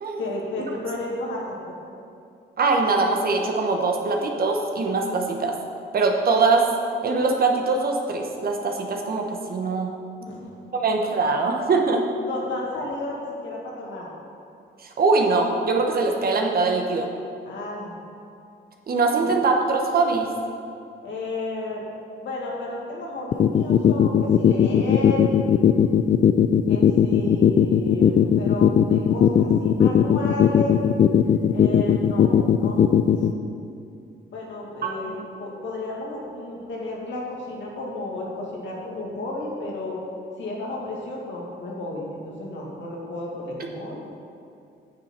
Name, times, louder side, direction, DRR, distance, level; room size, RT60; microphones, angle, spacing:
voice 1, 0.2-1.8 10.2-10.8 12.2-14.1 17.4-18.0 19.2-19.3 21.0-21.8 22.2-25.3 26.7-30.8 31.5-33.1 34.3-40.0 40.4-44.0, left 2 dB, 70° left, -3 dB, 2.2 m, -32 dB
voice 2, 2.6-5.5 5.9-6.7 7.0-9.9 10.7-12.0 14.8-17.1 18.9-20.3 35.0-35.3, right 3 dB, 50° right, 2 dB, 1.2 m, -22 dB
sound 1, 23.3-33.3, left 9 dB, 40° left, 0.4 m, -17 dB
9.4 x 7.1 x 4.4 m, 2.5 s
cardioid pair, 90°, 20 cm